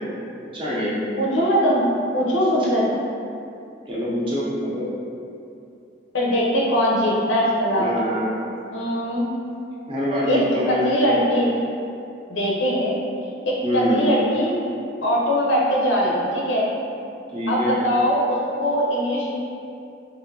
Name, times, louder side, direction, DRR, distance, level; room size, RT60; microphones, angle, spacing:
voice 1, 0.5-1.0 3.9-4.9 7.8-8.4 9.9-10.8 13.6-14.0 17.3-17.8, equal, 25° right, -7 dB, 0.5 m, -24 dB
voice 2, 1.2-1.8 2.1-2.9 6.1-8.2 8.7-9.3 10.3-10.4 10.7-11.5 12.3-13.0 13.4-14.5 15.0-16.7 17.5-19.3, equal, 85° left, -4 dB, 0.6 m, -21 dB
3.1 x 2.6 x 2.7 m, 2.6 s
head